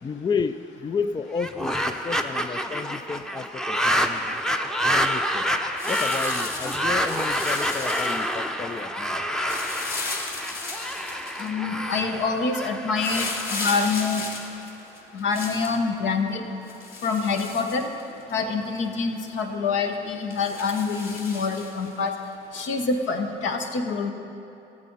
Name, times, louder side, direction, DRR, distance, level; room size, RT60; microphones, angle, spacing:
voice 1, 0.0-4.4 4.8-5.5 5.8-9.3, left 5 dB, 20° left, 11 dB, 0.4 m, -32 dB
sound 1, 1.3-14.5, equal, 5° left, 0.7 m, -28 dB
sound 2, 5.8-8.4 9.4-11.5 13.0-15.8 16.7-18.3 18.7-18.8 19.3-19.4 20.3-21.9 22.8-22.9, left 3 dB, 45° left, 2.2 m, -35 dB
voice 2, 11.4-14.2 15.1-16.4 17.0-17.9 18.3-22.1 22.5-24.1, left 4 dB, 65° left, 5 dB, 1.2 m, -26 dB
14.5 x 7.5 x 5.5 m, 2.8 s
hypercardioid pair, 65°, 21 cm